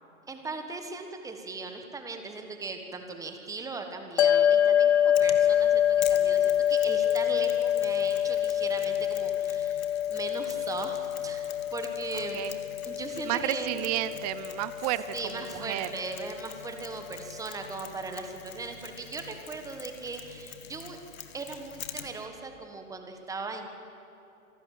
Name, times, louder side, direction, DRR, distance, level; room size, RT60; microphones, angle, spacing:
voice 1, 0.3-9.8 10.1-12.4 12.8-13.8 15.1-21.0 21.3-23.7, right 3 dB, 10° right, 5 dB, 1.4 m, -38 dB
sound 1, 4.2-16.7, left 10 dB, 50° left, 0.7 m, -26 dB
Mechanisms, 5.2-22.3, left 8 dB, 70° left, 2.1 m, -46 dB
voice 2, 12.1-12.6 13.2-15.9, right 14 dB, 30° right, 15 dB, 0.7 m, -32 dB
26.5 x 12.0 x 9.3 m, 2.8 s
hypercardioid pair, 140°, 42 cm